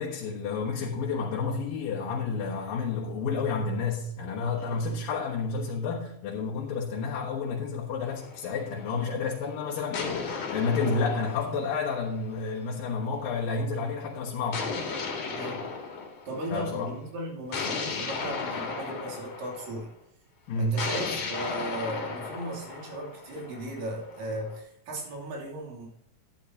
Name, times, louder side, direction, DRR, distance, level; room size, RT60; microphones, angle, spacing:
voice 1, 0.0-14.7 16.5-16.9 20.5-20.8, left 4 dB, 85° left, 3.3 m, -30 dB
voice 2, 4.5-5.1 15.3-15.6 16.3-19.9 20.6-25.9, right 1 dB, 85° right, 4.7 m, -36 dB
sound 1, 8.1-9.1 9.9-12.5 14.5-16.7 17.5-19.8 20.8-24.6, left 5 dB, 65° left, 3.4 m, -35 dB
11.5 x 11.0 x 2.9 m
omnidirectional pair, 3.9 m